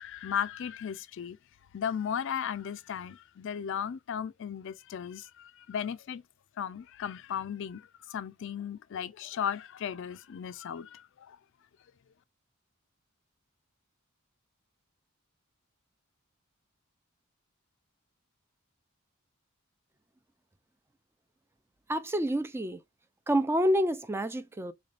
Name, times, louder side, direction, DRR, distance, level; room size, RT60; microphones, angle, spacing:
voice 1, 0.0-1.4 1.7-6.2 6.6-11.4, left 8 dB, 60° left, 0.4 m, -36 dB
voice 2, 21.9-22.8 23.3-24.7, equal, 10° right, 0.3 m, -28 dB
4.1 x 3.2 x 2.4 m
head